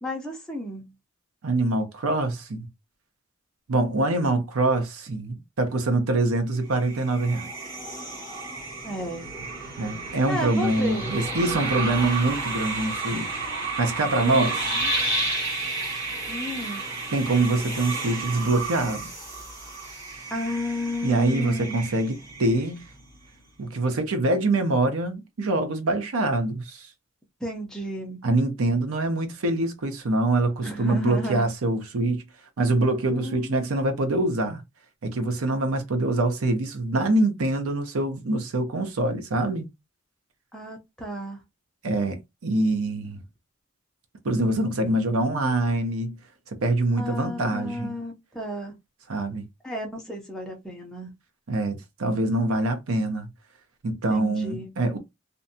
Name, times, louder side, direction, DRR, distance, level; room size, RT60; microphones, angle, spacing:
voice 1, 0.0-0.9 8.8-9.3 10.3-11.2 14.2-14.9 16.3-16.9 20.3-21.7 27.4-28.2 30.6-31.5 33.1-33.6 40.5-41.4 45.3-45.5 47.0-48.8 49.6-51.1 54.1-54.7, left 1 dB, 5° left, 0.5 m, -32 dB
voice 2, 1.4-2.7 3.7-7.5 9.8-14.5 17.1-19.1 21.0-22.8 23.6-26.9 28.2-32.2 32.6-34.6 35.0-39.7 41.8-43.2 44.2-46.2 46.5-47.9 49.1-49.4 51.5-53.3 53.8-55.0, right 2 dB, 75° right, 0.6 m, -24 dB
sound 1, 6.7-23.0, right 2 dB, 15° right, 1.3 m, -32 dB
2.6 x 2.2 x 2.6 m
head